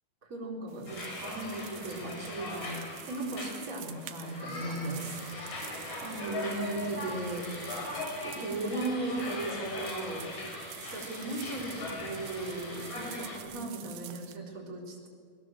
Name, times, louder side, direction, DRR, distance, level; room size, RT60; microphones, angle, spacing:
voice 1, 0.2-7.7 8.2-10.2 10.9-15.1, right 2 dB, 20° right, -1 dB, 4.1 m, -37 dB
sound 1, 0.7-14.4, right 13 dB, 85° right, 2.8 m, -48 dB
sound 2, 0.9-13.4, left 2 dB, 70° left, 6.0 m, -40 dB
sound 3, 4.2-13.7, right 1 dB, 55° right, 6.6 m, -54 dB
28.5 x 20.0 x 7.7 m, 2.1 s
omnidirectional pair, 4.1 m